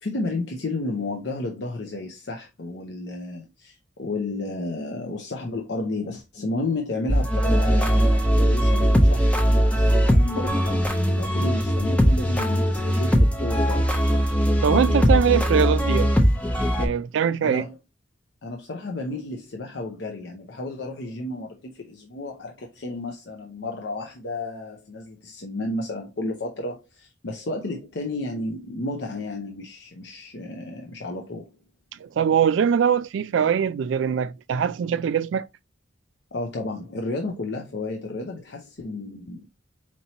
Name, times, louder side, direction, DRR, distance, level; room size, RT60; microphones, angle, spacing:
voice 1, 0.0-13.9 17.4-17.8 18.4-31.6 36.3-39.5, left 2 dB, 60° left, 0.6 m, -32 dB
sound 1, 7.1-16.9, equal, 5° left, 0.6 m, -20 dB
voice 2, 14.6-16.2 16.8-17.6 32.0-35.5, right 7 dB, 75° right, 0.3 m, -22 dB
4.4 x 2.8 x 2.8 m
head